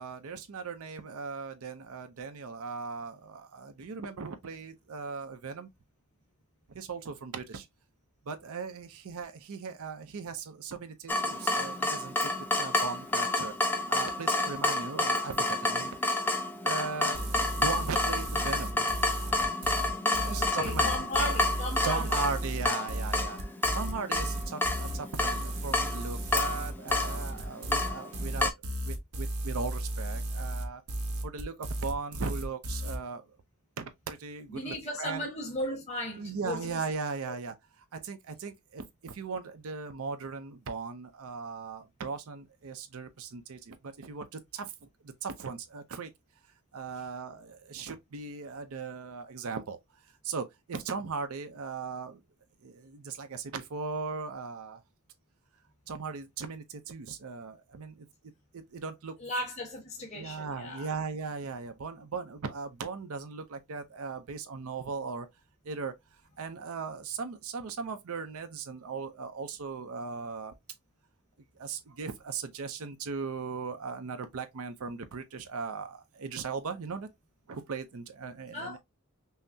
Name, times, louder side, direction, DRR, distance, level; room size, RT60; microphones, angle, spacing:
voice 1, 0.0-5.7 6.7-7.7 8.3-12.3 12.6-13.5 13.9-16.3 16.6-17.2 17.6-18.9 20.2-20.9 21.8-23.4 23.7-28.5 28.8-30.8 31.2-33.2 33.8-35.2 36.2-37.5 37.9-44.7 45.0-46.1 46.7-49.8 50.2-52.2 52.6-54.8 55.9-58.1 58.5-59.2 60.1-65.3 65.6-65.9 66.4-70.5 71.6-77.1 77.5-78.8, right 5 dB, 70° right, 0.5 m, -38 dB
Water tap faucet / Drip, 11.1-28.5, left 2 dB, 10° left, 0.4 m, -30 dB
sound 1, 17.1-33.0, right 1 dB, 90° right, 0.9 m, -34 dB
voice 2, 20.1-22.2 34.5-36.8 37.3-37.4 47.0-47.1 59.2-61.0 78.5-78.8, left 1 dB, 30° left, 1.4 m, -36 dB
5.6 x 2.0 x 2.6 m
head